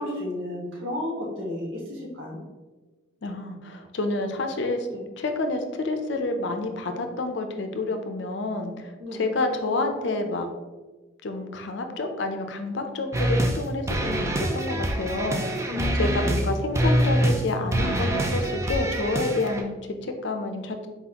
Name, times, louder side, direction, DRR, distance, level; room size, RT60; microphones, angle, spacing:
voice 1, 0.0-2.4 4.9-5.0 9.0-9.2 15.7-16.3, left 1 dB, 70° right, -3 dB, 1.3 m, -32 dB
voice 2, 3.2-4.9 5.2-10.5 11.2-15.6 16.0-20.9, left 2 dB, 60° left, 6 dB, 0.5 m, -29 dB
sound 1, 13.1-13.6 13.9-16.5 16.7-17.4 17.7-19.6, right 1 dB, 15° right, 0.3 m, -25 dB
4.2 x 4.0 x 2.8 m, 1.2 s
head